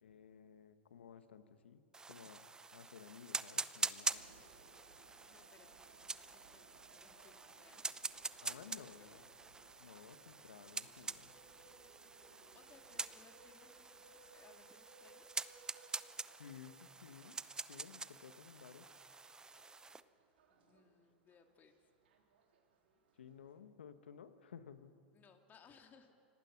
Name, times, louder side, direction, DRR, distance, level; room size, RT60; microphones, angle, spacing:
voice 1, 0.0-1.8 2.1-4.4 8.4-9.2 9.8-11.3 16.4-17.3 17.7-18.9 23.2-25.0, left 7 dB, 85° left, 10 dB, 1.3 m, -56 dB
sound 1, 1.9-20.0, right 3 dB, 10° right, 0.7 m, -45 dB
sound 2, 4.1-23.6, right 4 dB, 80° right, 3.5 m, -66 dB
voice 2, 5.0-8.4 8.7-9.2 12.5-15.5 20.5-21.9 25.1-26.2, left 5 dB, 30° left, 5 dB, 2.3 m, -66 dB
27.5 x 18.5 x 5.9 m, 2.3 s
hypercardioid pair, 105°, 6 cm